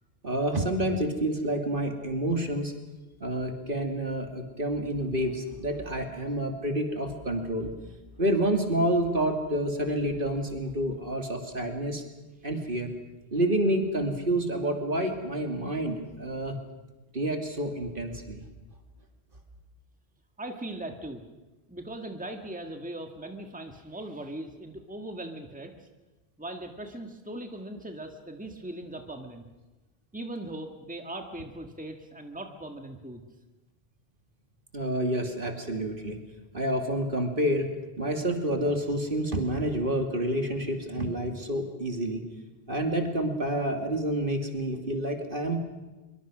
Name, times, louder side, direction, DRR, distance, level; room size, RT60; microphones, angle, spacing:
voice 1, 0.2-2.7 3.2-7.7 8.2-12.0 12.4-12.9 13.3-16.6 17.1-18.4 34.7-36.2 36.5-37.7 38.0-42.2 42.7-45.6, right 1 dB, 55° right, 4 dB, 2.8 m, -28 dB
voice 2, 20.4-21.2 21.7-25.9 26.4-29.4 30.1-33.2, right 1 dB, 5° right, 5 dB, 1.8 m, -39 dB
24.5 x 23.5 x 6.2 m, 1.1 s
omnidirectional pair, 1.1 m